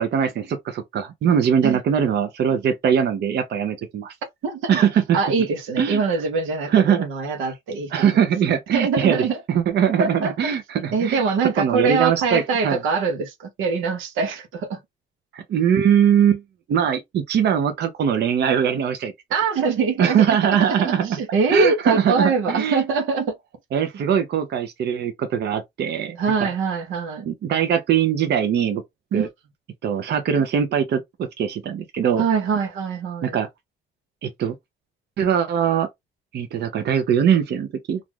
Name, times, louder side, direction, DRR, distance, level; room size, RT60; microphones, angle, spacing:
voice 1, 0.0-4.1 4.7-5.2 5.8-6.0 6.6-7.1 7.9-11.2 11.6-12.8 15.3-16.4 16.7-19.1 20.0-21.2 21.5-22.8 23.7-26.5 27.3-28.8 29.1-29.3 29.8-32.2 33.2-33.5 34.2-34.6 35.2-35.9 36.3-38.0, right 8 dB, 60° right, 0.6 m, -21 dB
voice 2, 4.4-4.8 5.1-8.0 8.7-9.4 10.0-10.3 10.9-14.8 19.3-20.2 20.6-23.4 26.2-27.3 29.1-29.3 32.2-33.4, right 5 dB, 85° right, 0.9 m, -23 dB
2.5 x 2.3 x 3.1 m
cardioid pair, 90°, 20 cm